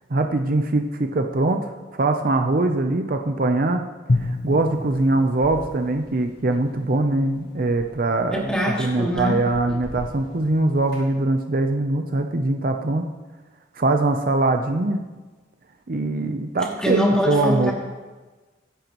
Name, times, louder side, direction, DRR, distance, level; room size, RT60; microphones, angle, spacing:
voice 1, 0.1-3.8 4.1-8.5 8.8-13.1 13.7-15.0 15.9-17.0 17.3-17.7, right 2 dB, 50° right, 5 dB, 0.7 m, -22 dB
Drum, 4.1-7.0, left 2 dB, 55° left, 0.8 m, -29 dB
sound 1, 4.5-11.1, equal, 85° left, 5.2 m, -45 dB
voice 2, 8.3-9.4 9.7-9.8 16.7-17.7, equal, 5° left, -3 dB, 2.6 m, -23 dB
23.5 x 10.5 x 3.1 m, 1.3 s
head